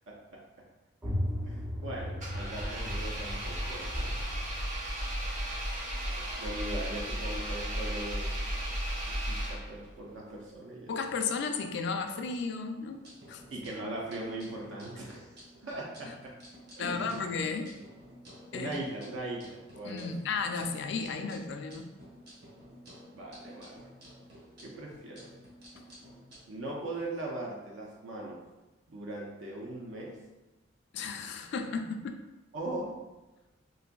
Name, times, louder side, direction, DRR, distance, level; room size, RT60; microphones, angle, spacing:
sound 1, 1.0-6.6, left 1 dB, 15° right, 0.5 m, -38 dB
voice 1, 1.5-4.1 6.1-8.4 9.1-10.9 13.5-15.3 15.6-16.3 16.8-17.3 18.5-20.1 23.1-23.7 24.6-25.2 26.5-28.4 28.9-30.2 32.5-33.0, right 1 dB, 75° right, -2 dB, 0.5 m, -39 dB
Engine, 2.2-9.9, right 1 dB, 40° right, 0.9 m, -34 dB
voice 2, 10.9-13.0 13.3-13.4 16.8-17.7 18.5-18.7 19.8-21.9 30.9-32.2, left 4 dB, 65° left, 6 dB, 0.3 m, -34 dB
sound 2, 12.9-26.4, equal, 55° right, 1.3 m, -52 dB
3.9 x 2.5 x 2.2 m, 1.1 s
head